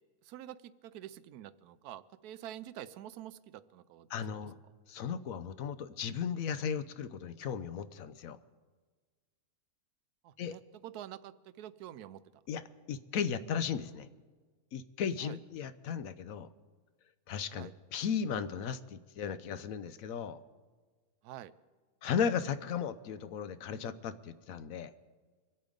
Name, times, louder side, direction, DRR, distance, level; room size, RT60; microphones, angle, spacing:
voice 1, 0.2-4.4 10.2-12.4 15.2-15.4 17.5-17.7 21.2-21.5, right 12 dB, 85° right, 15 dB, 1.1 m, -47 dB
voice 2, 4.1-4.6 4.9-8.4 10.4-10.5 12.5-12.6 12.9-14.1 14.7-16.5 17.3-20.4 22.0-24.9, left 7 dB, 70° left, 13 dB, 1.1 m, -36 dB
25.0 x 8.5 x 5.2 m, 1.4 s
omnidirectional pair, 1.6 m